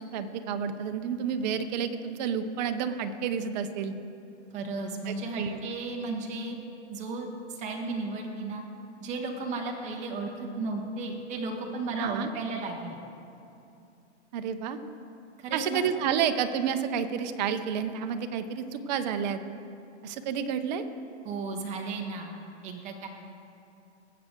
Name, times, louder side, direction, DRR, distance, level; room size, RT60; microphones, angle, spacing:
voice 1, 0.0-3.9 5.1-5.6 12.0-12.3 14.3-14.8 15.5-19.4 20.0-20.8, right 7 dB, 40° right, 9 dB, 0.7 m, -30 dB
voice 2, 4.5-6.6 6.9-8.6 9.0-13.0 15.4-15.8 21.2-22.3 22.6-23.1, right 3 dB, 20° right, 2 dB, 1.2 m, -34 dB
19.5 x 7.8 x 3.7 m, 2.7 s
hypercardioid pair, 155°, 35 cm